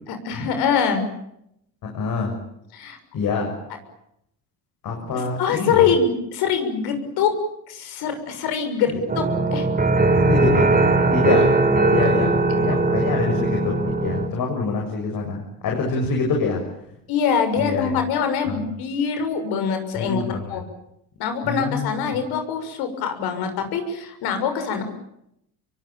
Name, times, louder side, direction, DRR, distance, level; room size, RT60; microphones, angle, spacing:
voice 1, 0.1-1.0 2.7-3.0 5.4-7.3 7.7-9.2 9.5-9.7 17.1-20.2 20.5-20.6 21.2-24.8, left 6 dB, 80° left, 8 dB, 6.7 m, -23 dB
voice 2, 1.8-2.4 3.1-3.5 4.8-5.9 8.9-9.0 10.2-10.7 11.1-11.6 11.9-16.7 17.6-18.0 18.4-18.7 20.0-20.6 21.4-22.0, left 4 dB, 60° left, 1 dB, 7.2 m, -26 dB
sound 1, 9.1-14.3, right 2 dB, 25° right, 4.5 m, -19 dB
27.0 x 23.5 x 9.0 m, 0.78 s
cardioid pair, 105°, 38 cm